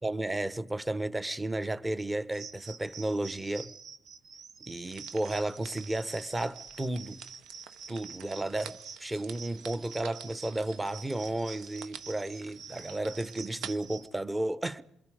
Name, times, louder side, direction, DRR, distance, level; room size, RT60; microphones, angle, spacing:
voice 1, 0.0-3.7 4.6-7.2 7.9-14.8, right 1 dB, 15° right, 1.1 m, -33 dB
sound 1, 2.3-14.1, right 6 dB, 70° right, 1.7 m, -47 dB
sound 2, 4.8-13.7, right 9 dB, 85° right, 1.1 m, -50 dB
28.0 x 22.0 x 5.0 m
cardioid pair, 90°, 0 cm